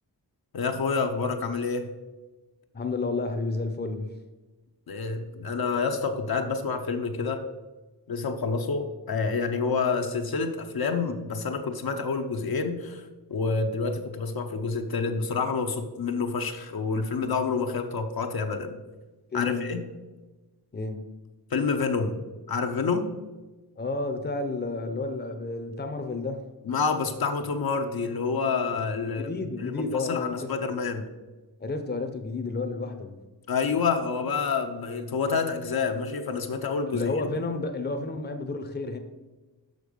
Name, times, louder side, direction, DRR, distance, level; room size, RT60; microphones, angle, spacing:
voice 1, 0.5-1.9 4.9-7.4 8.1-13.0 13.3-18.7 19.3-19.8 21.5-23.1 26.7-29.3 29.6-31.1 33.5-37.1, left 4 dB, 60° left, 5 dB, 0.8 m, -28 dB
voice 2, 2.7-4.1 19.3-19.7 20.7-21.1 23.8-26.4 29.0-30.5 31.6-33.1 36.9-39.0, left 3 dB, 25° left, 6 dB, 0.8 m, -31 dB
6.6 x 6.1 x 5.1 m, 1.2 s
wide cardioid pair, 85°, 42 cm